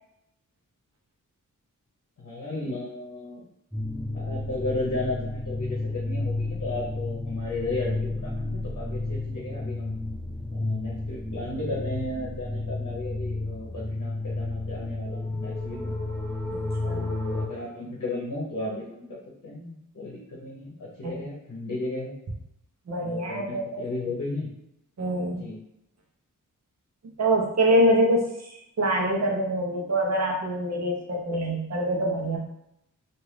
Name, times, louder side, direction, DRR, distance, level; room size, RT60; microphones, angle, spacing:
voice 1, 2.2-3.5 4.1-10.0 10.5-15.9 16.9-22.1 23.0-24.5 25.3-25.6, left 2 dB, 60° left, -4 dB, 0.8 m, -34 dB
sound 1, 3.7-17.5, left 2 dB, 5° left, 0.5 m, -31 dB
voice 2, 16.5-17.0 21.0-21.1 22.9-23.8 25.0-25.4 27.2-32.4, right 1 dB, 55° right, 0 dB, 0.8 m, -25 dB
2.6 x 2.4 x 3.2 m, 0.80 s
cardioid pair, 60°, 33 cm